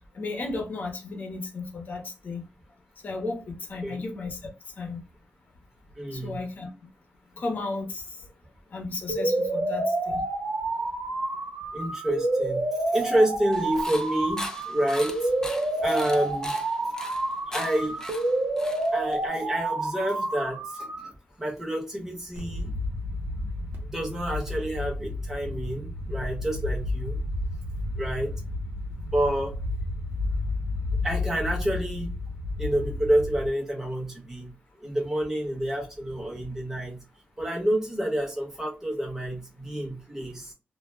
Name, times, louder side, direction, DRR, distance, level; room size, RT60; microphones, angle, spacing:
voice 1, 0.1-2.4 3.0-4.4 4.8-5.0 6.1-6.7 7.4-8.3 8.7-10.2, left 3 dB, 55° left, 2 dB, 0.8 m, -34 dB
voice 2, 6.0-6.4 11.7-15.3 15.8-16.6 17.5-18.0 18.9-21.1 21.4-22.7 23.8-27.2 28.0-28.3 29.1-29.5 31.0-32.1 32.6-34.5 34.8-37.0 37.4-40.5, right 1 dB, 10° right, -1 dB, 1.0 m, -28 dB
sound 1, 9.1-21.1, right 2 dB, 50° right, 0.5 m, -29 dB
sound 2, 13.5-19.3, left 2 dB, 15° left, 0.4 m, -40 dB
sound 3, 22.4-33.5, left 2 dB, 75° right, 0.8 m, -32 dB
2.2 x 2.1 x 3.1 m, 0.31 s
wide cardioid pair, 130°, 4 cm